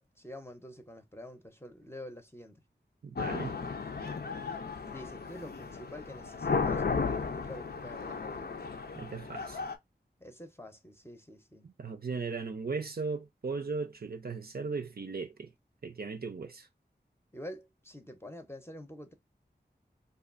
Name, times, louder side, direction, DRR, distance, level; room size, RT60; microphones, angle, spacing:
voice 1, 0.0-2.6 4.9-8.5 10.2-11.7 17.3-19.1, left 1 dB, 15° left, 0.7 m, -47 dB
voice 2, 3.0-3.5 9.0-9.6 11.6-15.5 15.8-16.7, right 4 dB, 55° right, 0.5 m, -37 dB
sound 1, 3.2-9.8, left 5 dB, 60° left, 0.5 m, -35 dB
2.5 x 2.4 x 2.4 m
wide cardioid pair, 40°, 19 cm